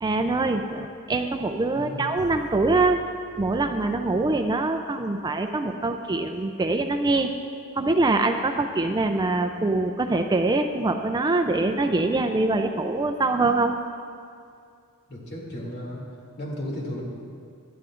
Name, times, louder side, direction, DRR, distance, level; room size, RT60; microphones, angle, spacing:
voice 1, 0.0-3.0 3.4-7.3 7.8-13.7, right 2 dB, 20° right, 6 dB, 0.4 m, -24 dB
voice 2, 15.1-16.0 16.4-17.0, left 1 dB, 55° left, -3 dB, 2.6 m, -34 dB
17.5 x 12.0 x 2.5 m, 2.3 s
head